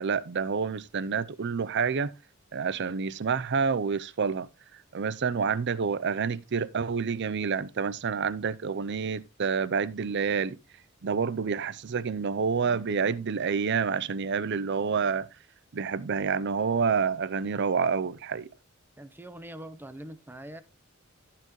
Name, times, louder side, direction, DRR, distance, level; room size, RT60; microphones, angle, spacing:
voice 1, 0.0-2.1 2.5-10.6 11.0-15.3 15.7-18.5, right 5 dB, 55° right, 0.5 m, -28 dB
voice 2, 19.0-20.6, right 1 dB, 10° right, 0.8 m, -43 dB
14.5 x 5.8 x 3.0 m
head